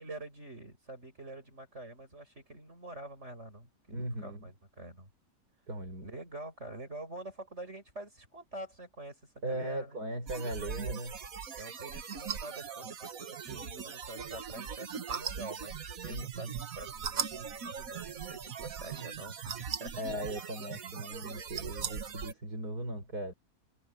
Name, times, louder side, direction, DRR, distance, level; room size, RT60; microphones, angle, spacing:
voice 1, 0.0-5.1 6.0-10.0 11.5-15.7 16.0-20.2, right 2 dB, 45° right, 7.3 m, -46 dB
voice 2, 3.9-4.5 5.7-6.1 9.4-11.2 16.1-16.6 20.0-23.3, right 1 dB, 80° right, 6.5 m, -38 dB
sound 1, 10.3-22.3, right 7 dB, 65° right, 1.6 m, -40 dB
omnidirectional pair, 1.6 m